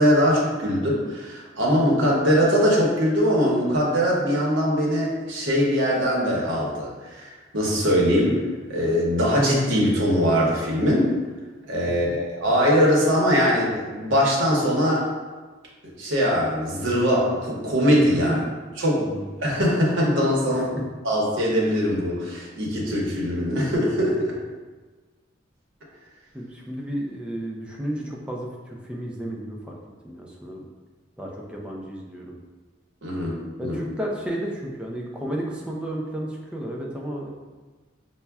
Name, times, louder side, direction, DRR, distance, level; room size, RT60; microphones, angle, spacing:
voice 1, 0.0-8.4 8.7-11.1 11.7-15.1 16.0-18.3 18.8-19.1 19.4-20.7 21.0-24.4 33.0-33.8, equal, 90° right, -4 dB, 0.9 m, -21 dB
voice 2, 11.8-12.2 18.3-18.4 19.0-19.3 20.5-20.7 26.3-29.8 30.0-30.7 31.2-32.4 33.6-37.3, right 1 dB, 5° right, -2 dB, 0.4 m, -32 dB
5.5 x 2.1 x 2.3 m, 1.3 s
head